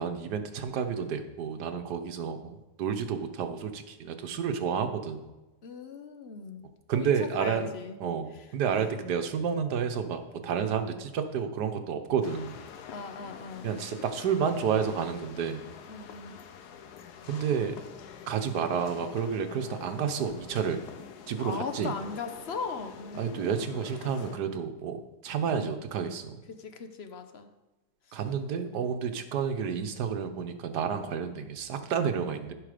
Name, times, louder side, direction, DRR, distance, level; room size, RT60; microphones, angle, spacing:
voice 1, 0.0-5.3 6.9-7.7 8.0-12.5 13.6-15.6 17.2-17.8 18.3-20.8 21.3-21.9 23.2-25.0 25.2-26.4 28.1-32.5, right 7 dB, 85° right, 7 dB, 1.5 m, -30 dB
voice 2, 5.6-6.7 6.9-8.0 8.3-8.5 12.9-13.7 15.9-16.4 21.4-23.9 25.3-25.8 26.5-27.5 28.1-28.2, left 5 dB, 45° left, 7 dB, 1.0 m, -39 dB
sound 1, 12.2-24.4, left 7 dB, 80° left, 1.3 m, -47 dB
15.0 x 5.8 x 5.0 m, 1.1 s
omnidirectional pair, 1.7 m